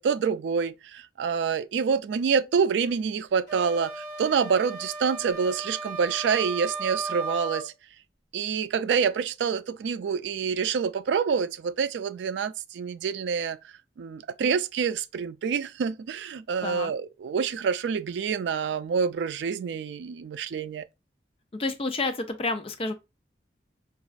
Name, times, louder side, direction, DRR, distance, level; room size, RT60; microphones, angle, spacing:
voice 1, 0.0-7.7 8.3-13.6 14.0-20.8, right 6 dB, 90° right, 0.3 m, -27 dB
sound 1, 3.5-7.7, right 3 dB, 25° right, 1.7 m, -35 dB
voice 2, 21.5-22.9, left 3 dB, 30° left, 0.4 m, -29 dB
5.0 x 2.3 x 2.4 m
head